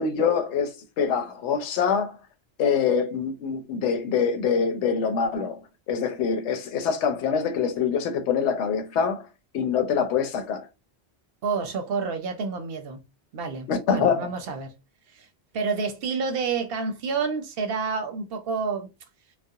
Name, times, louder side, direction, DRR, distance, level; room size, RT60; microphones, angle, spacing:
voice 1, 0.0-2.2 2.6-5.6 5.9-9.3 9.5-10.7 13.7-14.3, left 6 dB, 90° left, 0.9 m, -25 dB
voice 2, 11.4-13.0 13.3-14.7 15.1-15.3 15.5-18.9, right 5 dB, 65° right, 0.7 m, -29 dB
2.3 x 2.0 x 2.7 m
omnidirectional pair, 1.1 m